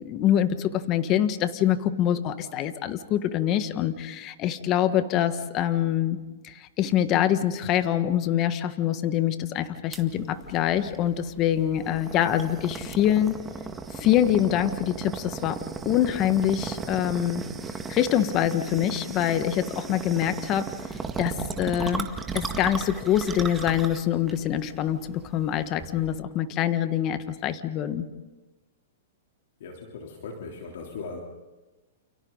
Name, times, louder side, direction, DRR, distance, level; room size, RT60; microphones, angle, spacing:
voice 1, 0.0-6.2 6.4-13.4 13.9-17.4 17.9-20.7 21.2-22.1 22.3-28.0, left 11 dB, 35° left, 10 dB, 1.6 m, -25 dB
sound 1, 9.9-26.2, right 5 dB, 15° right, 1.9 m, -36 dB
voice 2, 29.6-31.2, left 4 dB, 70° left, 0 dB, 3.5 m, -38 dB
29.5 x 29.5 x 4.1 m, 1.2 s
hypercardioid pair, 130°, 0 cm